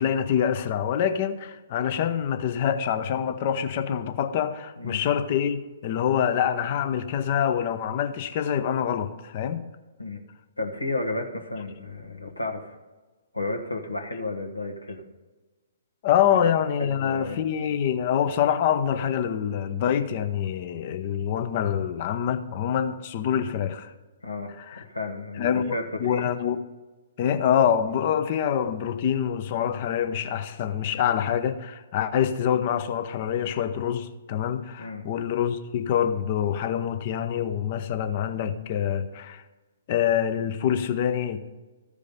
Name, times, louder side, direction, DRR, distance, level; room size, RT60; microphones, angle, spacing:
voice 1, 0.0-9.6 16.0-23.9 24.7-24.8 25.4-25.7 26.0-26.6 27.2-39.4 39.9-41.4, left 9 dB, 40° left, 0.8 m, -25 dB
voice 2, 10.6-12.8 13.3-15.0 16.3-16.4 16.8-17.4 24.2-26.3 34.8-35.0, left 2 dB, 85° left, 1.3 m, -32 dB
14.0 x 5.0 x 5.3 m
figure-of-eight pair, 125°, 0 cm